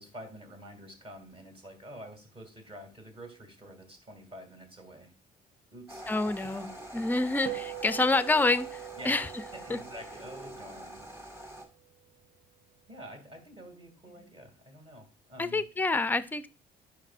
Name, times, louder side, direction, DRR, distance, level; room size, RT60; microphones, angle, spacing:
voice 1, 0.0-5.1 5.7-6.0 6.4-6.5 6.9-7.5 9.0-9.3 9.5-11.5 12.9-15.6, equal, 35° right, 5 dB, 2.4 m, -48 dB
sound 1, 5.9-11.6, right 1 dB, 15° right, 1.8 m, -45 dB
voice 2, 6.1-9.3 9.7-9.8 15.4-16.5, left 3 dB, 10° left, 13 dB, 0.4 m, -28 dB
sound 2, 7.5-12.1, right 16 dB, 55° right, 0.8 m, -43 dB
10.0 x 5.0 x 2.4 m, 0.34 s
cardioid pair, 110°, 17 cm